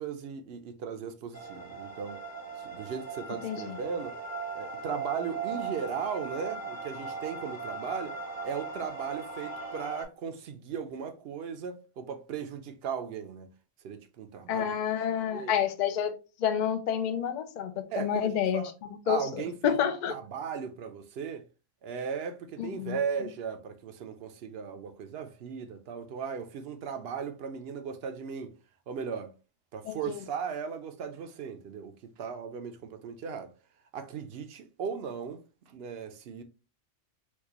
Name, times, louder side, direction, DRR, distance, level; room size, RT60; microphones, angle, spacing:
voice 1, 0.0-2.2 2.6-4.2 4.5-8.2 8.4-13.5 13.8-14.7 15.3-15.5 17.9-18.7 19.1-21.4 21.8-28.5 28.9-29.3 29.7-33.5 33.9-35.4 35.7-36.4, right 6 dB, 65° right, 0.7 m, -37 dB
sound 1, 1.3-10.0, right 4 dB, 15° left, 0.7 m, -39 dB
voice 2, 3.4-3.8 14.5-16.1 16.4-20.1 22.6-23.0 29.9-30.2, left 8 dB, 55° left, 0.5 m, -29 dB
4.5 x 2.3 x 2.8 m
omnidirectional pair, 1.2 m